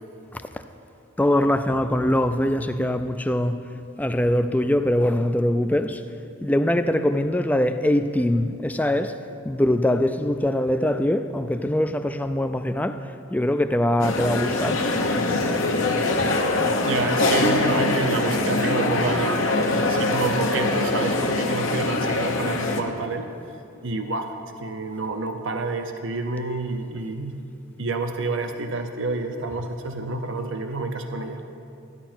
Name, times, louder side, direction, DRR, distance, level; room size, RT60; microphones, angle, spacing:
voice 1, 1.2-3.6 4.0-6.0 6.4-9.2 9.4-14.8, left 1 dB, 10° left, 0.3 m, -22 dB
sound 1, 14.0-22.8, left 2 dB, 75° left, 1.0 m, -23 dB
voice 2, 16.5-19.4 19.8-23.3 23.8-27.4 27.8-31.4, right 3 dB, 70° right, 0.7 m, -29 dB
13.5 x 10.0 x 4.4 m
head